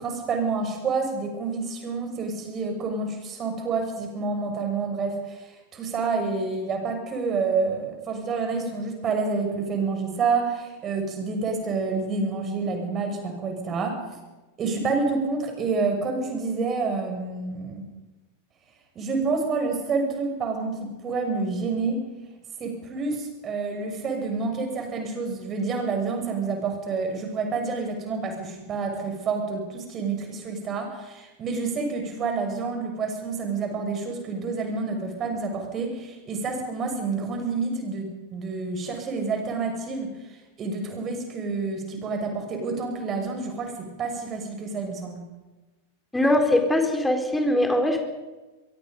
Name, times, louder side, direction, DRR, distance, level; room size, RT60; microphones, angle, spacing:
voice 1, 0.0-14.0 14.6-17.8 18.9-22.0 22.6-45.2, right 4 dB, 25° right, 4 dB, 6.5 m, -28 dB
voice 2, 46.1-48.0, left 1 dB, 5° left, 4 dB, 4.0 m, -21 dB
24.5 x 23.0 x 5.3 m, 1.1 s
figure-of-eight pair, 90°, 0 cm